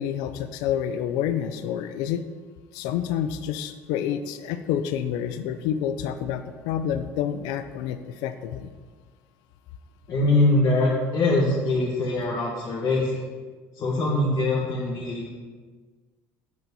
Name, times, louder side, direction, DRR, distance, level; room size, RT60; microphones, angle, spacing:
voice 1, 0.0-2.2 2.7-8.7, left 9 dB, 80° left, 10 dB, 0.5 m, -28 dB
voice 2, 10.1-13.2 13.7-15.3, left 2 dB, 55° left, -5 dB, 2.1 m, -23 dB
8.9 x 6.0 x 5.6 m, 1.5 s
cardioid pair, 110°, 7 cm